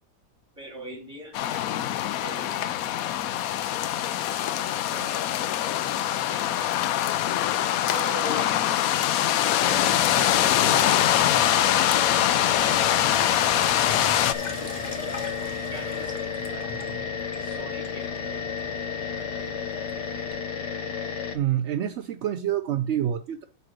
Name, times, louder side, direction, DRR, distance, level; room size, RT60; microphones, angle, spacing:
voice 1, 0.6-1.7 2.2-2.8 4.9-5.3 6.1-6.9 7.9-8.9 9.3-10.9 11.3-12.9 13.3-14.1 14.6-15.2 15.7-16.7 17.4-18.5 19.2-19.5, right 1 dB, 5° right, 3.0 m, -42 dB
sound 1, 1.3-14.3, left 12 dB, 70° left, 0.9 m, -23 dB
sound 2, 9.6-21.4, left 6 dB, 90° left, 1.6 m, -32 dB
Sink (filling or washing), 12.5-20.3, left 3 dB, 30° left, 1.0 m, -41 dB
voice 2, 21.3-23.4, right 11 dB, 70° right, 0.6 m, -27 dB
9.2 x 3.5 x 6.2 m
omnidirectional pair, 1.8 m